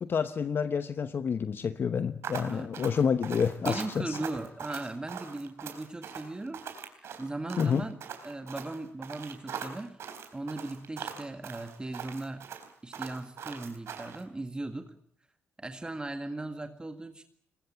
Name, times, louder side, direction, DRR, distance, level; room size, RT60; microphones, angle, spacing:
voice 1, 0.0-4.2 7.6-7.8, left 6 dB, 50° left, 11 dB, 1.0 m, -29 dB
sound 1, 2.2-14.2, right 7 dB, 65° right, 4.0 m, -41 dB
voice 2, 2.4-3.0 3.7-6.6 6.9-10.0 10.3-12.5 12.8-14.9 15.6-17.2, right 2 dB, 20° right, 7 dB, 1.9 m, -38 dB
21.5 x 21.0 x 8.8 m, 0.66 s
supercardioid pair, 65°, 5 cm